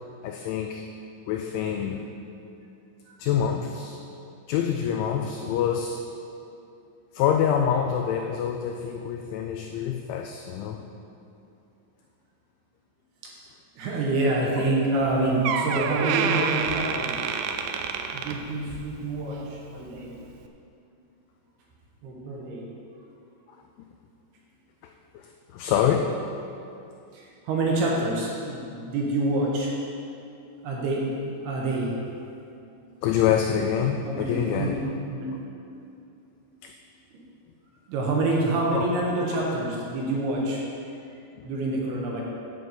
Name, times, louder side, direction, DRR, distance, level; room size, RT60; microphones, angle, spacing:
voice 1, 0.2-0.9 1.3-2.1 3.2-4.0 4.5-6.0 7.1-10.8 14.6-14.8 16.4-16.5 25.1-26.2 33.0-34.9 36.6-36.7 38.7-38.9, left 8 dB, 85° left, 4 dB, 2.7 m, -26 dB
voice 2, 13.8-17.2 18.1-20.1 22.0-22.6 27.1-29.7 30.6-31.9 34.0-34.8 35.1-35.3 37.1-37.2 37.9-40.6 41.4-42.2, right 2 dB, 70° right, -3 dB, 2.5 m, -27 dB
Door, 15.0-15.1 15.4-18.9 19.3-19.6 20.3-20.4, right 7 dB, 90° right, 3.3 m, -28 dB
9.9 x 5.4 x 7.6 m, 2.6 s
omnidirectional pair, 5.9 m